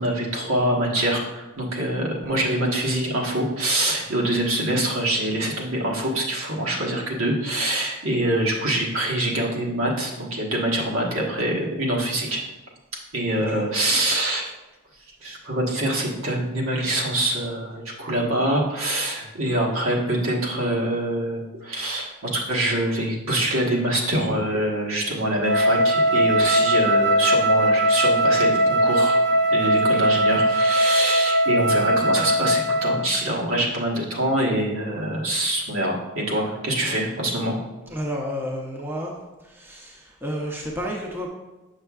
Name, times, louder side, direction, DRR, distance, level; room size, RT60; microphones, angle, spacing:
voice 1, 0.0-12.4 13.1-14.5 15.2-29.2 29.5-37.6, right 1 dB, 75° right, -3 dB, 1.3 m, -25 dB
Wind instrument woodwind instrument, 25.4-33.1, equal, 55° right, 0.8 m, -20 dB
voice 2, 37.9-39.1 39.4-41.3, equal, 10° right, -2 dB, 0.7 m, -31 dB
6.8 x 6.5 x 2.4 m, 1.1 s
head